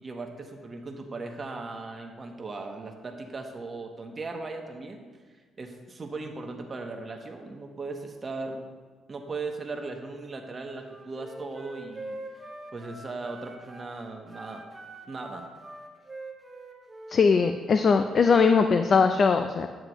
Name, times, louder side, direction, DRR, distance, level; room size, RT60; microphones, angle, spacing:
voice 1, 0.0-5.0 5.6-8.7 9.1-12.2 12.7-14.6 15.1-15.5, right 3 dB, 35° right, 3 dB, 1.1 m, -38 dB
Wind instrument woodwind instrument, 10.8-13.9 14.3-17.7, right 2 dB, 20° right, 1.1 m, -44 dB
voice 2, 17.1-19.7, left 5 dB, 50° left, 7 dB, 0.4 m, -21 dB
9.4 x 7.6 x 3.0 m, 1.5 s
cardioid pair, 90°, 0 cm